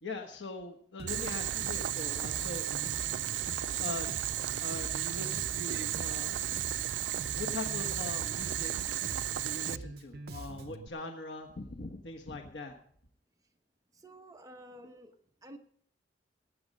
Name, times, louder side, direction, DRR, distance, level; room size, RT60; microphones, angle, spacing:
voice 1, 0.0-2.6 3.8-4.2 4.6-6.5 7.3-8.7 9.3-12.7, left 3 dB, 90° left, 3 dB, 1.3 m, -41 dB
Bass guitar, 1.0-10.9, right 2 dB, 60° right, 0.8 m, -45 dB
Boiling, 1.1-9.8, right 12 dB, 85° right, 0.4 m, -34 dB
voice 2, 13.9-15.1 15.4-15.6, right 1 dB, 20° right, 5 dB, 1.0 m, -50 dB
19.0 x 8.7 x 5.2 m, 0.63 s
head